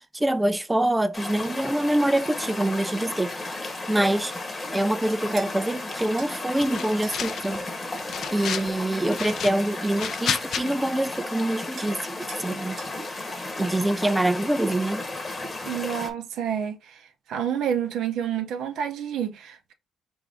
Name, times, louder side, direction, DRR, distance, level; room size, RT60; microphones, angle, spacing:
voice 1, 0.1-3.3 3.9-4.3 4.7-7.6 8.3-12.8 13.6-15.0, right 1 dB, 10° right, 0.4 m, -25 dB
sound 1, 1.1-16.1, left 2 dB, 25° left, 1.0 m, -34 dB
sound 2, 5.4-5.5 6.2-6.3 7.0-7.2 8.2-9.1 10.2-10.3 10.5-10.8 11.8-12.0 12.3-12.5 12.8-13.0, right 5 dB, 60° right, 0.9 m, -44 dB
sound 3, 6.6-7.6 7.9-8.7 9.1-10.6, left 8 dB, 65° left, 0.5 m, -31 dB
voice 2, 15.6-19.7, right 9 dB, 85° right, 0.5 m, -29 dB
4.6 x 2.6 x 3.4 m
cardioid pair, 90°, 0 cm